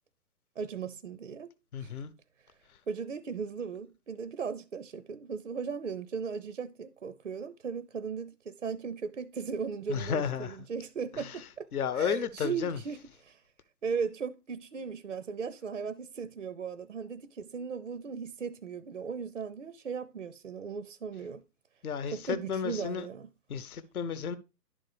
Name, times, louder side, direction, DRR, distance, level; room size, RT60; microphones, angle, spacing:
voice 1, 0.6-1.5 1.8-1.9 2.9-11.7 11.9-13.4 13.8-21.4 22.1-23.3, right 6 dB, 50° right, 0.4 m, -37 dB
voice 2, 1.7-2.1 9.9-10.6 11.1-11.4 11.7-12.8 21.8-23.1 23.5-24.4, left 7 dB, 60° left, 1.0 m, -33 dB
11.0 x 3.9 x 4.8 m
hypercardioid pair, 170°, 50 cm